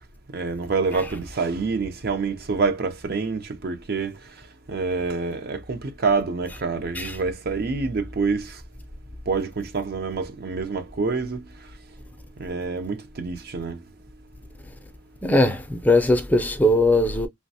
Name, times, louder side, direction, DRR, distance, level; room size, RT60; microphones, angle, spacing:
voice 1, 0.3-4.2 4.7-8.6 9.3-11.5 12.4-13.8, right 4 dB, 55° right, 0.5 m, -27 dB
voice 2, 15.2-17.3, left 1 dB, 10° left, 0.4 m, -20 dB
3.2 x 2.2 x 2.6 m
head